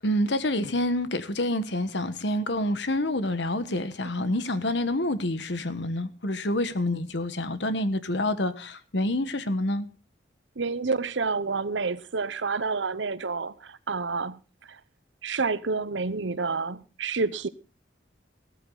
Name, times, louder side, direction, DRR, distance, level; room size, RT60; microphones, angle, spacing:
voice 1, 0.0-9.9, left 1 dB, 70° left, 1.3 m, -27 dB
voice 2, 10.6-14.4 15.2-17.5, right 4 dB, 80° right, 0.9 m, -29 dB
15.5 x 13.5 x 3.9 m
head